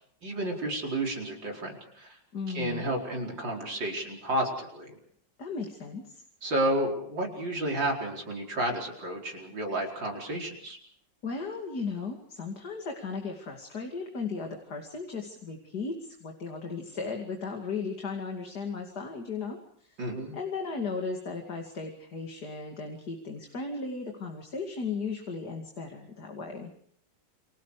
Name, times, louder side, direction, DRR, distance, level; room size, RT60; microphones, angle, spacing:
voice 1, 0.2-2.2 2.5-5.0 6.4-10.8 20.0-20.4, right 1 dB, 80° right, 0 dB, 5.4 m, -31 dB
voice 2, 2.3-2.9 5.4-6.2 11.2-20.0 20.3-26.7, left 4 dB, 60° left, 2 dB, 3.0 m, -36 dB
29.5 x 25.0 x 5.0 m, 0.63 s
omnidirectional pair, 2.0 m